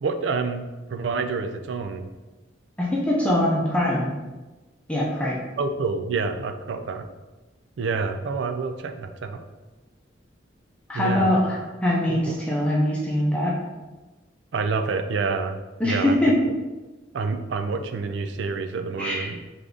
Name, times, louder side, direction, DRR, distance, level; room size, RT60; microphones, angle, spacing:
voice 1, 0.0-2.1 5.6-7.1 7.8-9.4 10.9-11.4 12.1-12.3 14.5-16.2 17.1-19.4, right 4 dB, 70° right, 8 dB, 0.4 m, -28 dB
voice 2, 2.8-4.1 4.9-5.4 10.9-13.5 15.8-16.4 19.0-19.3, left 1 dB, 5° left, -5 dB, 0.8 m, -23 dB
3.7 x 3.4 x 3.8 m, 1.2 s
head